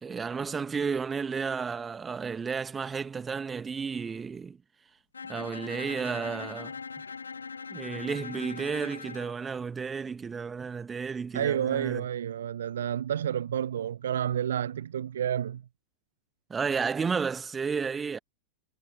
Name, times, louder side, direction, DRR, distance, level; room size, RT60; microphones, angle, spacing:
voice 1, 0.0-4.6 5.3-6.8 7.7-12.1 16.5-18.2, right 5 dB, 15° right, 1.5 m, -32 dB
Bowed string instrument, 5.1-9.4, left 5 dB, 75° left, 0.4 m, -41 dB
voice 2, 11.3-15.6, right 9 dB, 65° right, 0.3 m, -30 dB
figure-of-eight pair, 90°, 0 cm